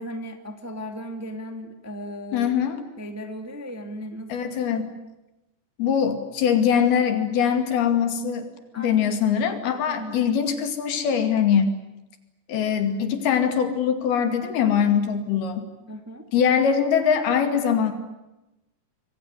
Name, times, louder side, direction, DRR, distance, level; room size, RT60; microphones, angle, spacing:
voice 1, 0.0-2.5 3.0-4.3 8.7-9.2 9.9-10.3 15.9-16.2, equal, 10° right, 6 dB, 1.1 m, -36 dB
voice 2, 2.3-2.8 4.3-4.9 5.8-8.5 8.8-11.8 12.5-15.7 16.3-17.9, left 7 dB, 80° left, 7 dB, 4.3 m, -22 dB
26.5 x 22.5 x 9.7 m, 0.99 s
omnidirectional pair, 4.4 m